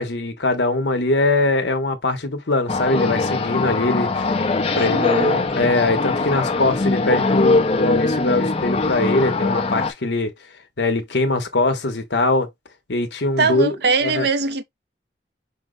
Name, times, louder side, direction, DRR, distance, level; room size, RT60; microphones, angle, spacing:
voice 1, 0.0-4.4 4.7-10.3 10.8-12.5 12.9-13.8 14.0-14.3, left 2 dB, 70° left, 1.0 m, -22 dB
sound 1, 2.7-9.9, left 3 dB, 35° left, 0.7 m, -21 dB
voice 2, 4.8-5.7 13.4-14.6, right 4 dB, 60° right, 0.6 m, -22 dB
5.6 x 2.1 x 3.8 m
head